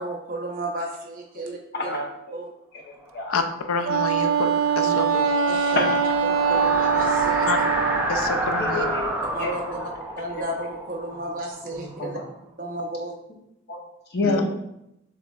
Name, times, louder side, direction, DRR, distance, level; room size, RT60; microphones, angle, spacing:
voice 1, 0.0-2.0 2.3-2.5 4.8-5.0 5.5-5.9 6.2-7.5 9.3-9.9 10.2-12.2 12.6-13.1 14.2-14.3, right 1 dB, 40° right, 0 dB, 0.8 m, -33 dB
voice 2, 1.7-2.0 2.9-3.4 4.4-4.5 5.1-5.2 5.6-5.9 8.6-9.5 9.8-9.9 10.3-10.4 12.0-12.2 13.7-13.8 14.1-14.5, left 2 dB, 50° left, 0 dB, 0.9 m, -28 dB
sound 1, 3.2-12.0, right 1 dB, 10° right, 0.5 m, -29 dB
voice 3, 3.3-5.1 7.5-7.6 8.1-8.9 14.2-14.4, left 4 dB, 85° left, 7 dB, 0.4 m, -28 dB
Wind instrument woodwind instrument, 3.8-8.1, right 6 dB, 80° right, 0.4 m, -22 dB
6.8 x 3.2 x 2.4 m, 0.82 s
head